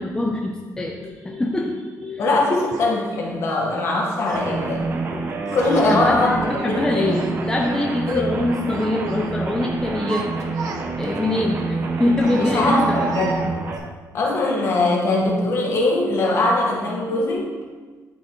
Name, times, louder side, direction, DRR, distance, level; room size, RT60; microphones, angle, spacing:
voice 1, 0.0-2.2 2.5-2.7 5.8-10.5 11.0-13.3, left 2 dB, 10° left, -1 dB, 0.5 m, -24 dB
voice 2, 2.2-5.0 5.5-7.2 8.1-8.3 12.2-13.5 14.1-17.5, left 2 dB, 45° left, -2 dB, 1.6 m, -21 dB
Child speech kid speaking, 2.7-2.9 3.8-4.5 5.5-6.1 6.5-7.7 8.0-8.3 8.7-9.3 9.8-11.2 12.2-13.9, right 4 dB, 70° right, 0.7 m, -34 dB
sound 1, 4.3-13.8, right 3 dB, 35° right, 0.6 m, -28 dB
12.0 x 4.4 x 3.1 m, 1.4 s
cardioid pair, 175°, 7 cm